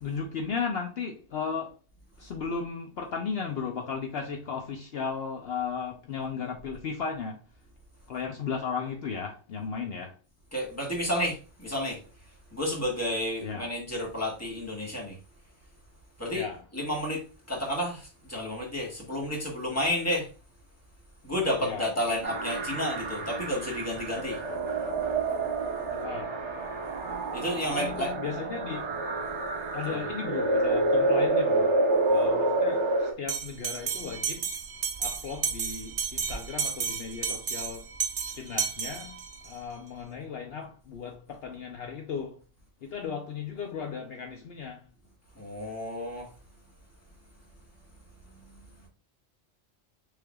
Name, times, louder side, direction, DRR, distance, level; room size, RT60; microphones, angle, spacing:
voice 1, 0.0-1.8 2.2-7.4 8.1-10.2 13.4-13.7 16.3-16.6 21.6-21.9 25.9-26.4 27.7-28.9 29.7-31.8 32.1-34.5 35.0-37.9 38.4-39.2 39.4-42.4 42.8-44.9, left 5 dB, 60° left, 0.9 m, -35 dB
voice 2, 10.5-12.0 12.5-15.2 16.2-16.5 16.7-20.3 21.2-24.4 27.3-28.1 29.9-30.0 45.3-46.3 48.3-48.9, left 1 dB, 15° left, 1.6 m, -31 dB
sound 1, 22.2-33.1, right 2 dB, 75° right, 1.3 m, -28 dB
Bell, 33.3-39.5, right 6 dB, 50° right, 0.8 m, -32 dB
6.4 x 3.4 x 2.3 m
omnidirectional pair, 1.2 m